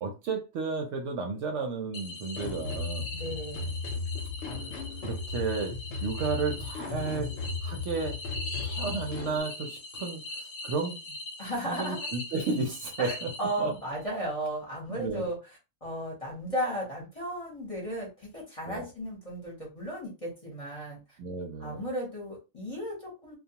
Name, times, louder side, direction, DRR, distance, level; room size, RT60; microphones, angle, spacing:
voice 1, 0.0-3.0 5.0-5.7 6.0-7.3 7.6-8.2 8.6-10.2 10.6-11.0 11.7-13.3 13.6-13.7 14.9-15.3 18.7-18.8 21.2-21.9, right 4 dB, 70° right, 3 dB, 0.8 m, -32 dB
sound 1, 1.9-13.9, left 2 dB, 90° left, 1.1 m, -41 dB
sound 2, 2.4-9.4, left 4 dB, 65° left, 0.8 m, -36 dB
voice 2, 3.1-3.8 11.4-12.1 13.0-15.4 15.8-21.2 21.6-23.4, equal, 30° left, -3 dB, 0.8 m, -35 dB
2.3 x 2.2 x 2.8 m, 0.28 s
omnidirectional pair, 1.4 m